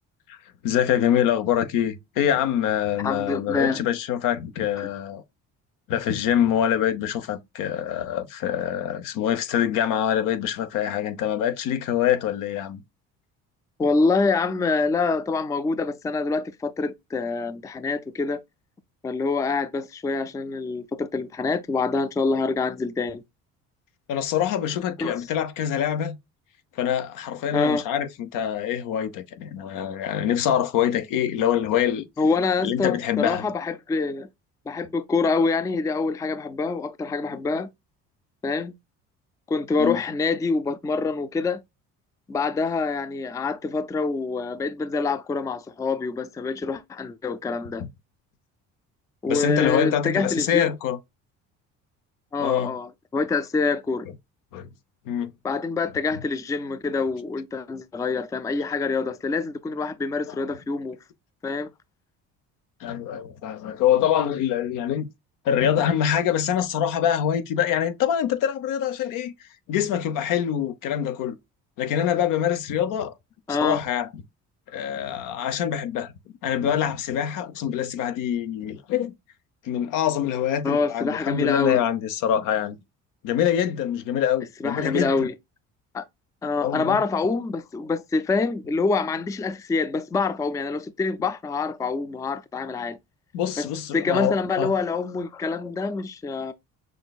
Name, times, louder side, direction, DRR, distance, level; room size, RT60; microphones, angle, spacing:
voice 1, 0.6-5.2 5.9-12.8 24.1-26.2 26.8-32.1 32.6-33.5 39.8-40.0 47.8-47.9 49.3-51.0 52.4-52.7 54.5-54.7 55.1-55.3 60.3-60.4 62.8-65.1 65.4-69.3 69.7-71.3 71.8-73.1 73.5-74.1 74.7-76.1 76.4-79.1 79.6-82.8 83.2-85.3 86.6-87.0 93.3-94.7, left 10 dB, 75° left, 0.8 m, -25 dB
voice 2, 3.0-3.8 4.8-4.9 13.8-18.4 19.0-23.2 25.0-25.2 27.5-27.8 32.2-34.3 34.7-37.7 38.4-38.7 39.5-41.6 42.3-47.8 49.2-50.7 52.3-54.1 55.4-61.0 61.4-61.7 73.5-73.8 80.6-81.8 84.6-85.3 85.9-86.0 86.4-93.0 93.6-96.5, left 4 dB, 10° left, 0.3 m, -26 dB
6.2 x 2.6 x 2.3 m
cardioid pair, 105°, 33 cm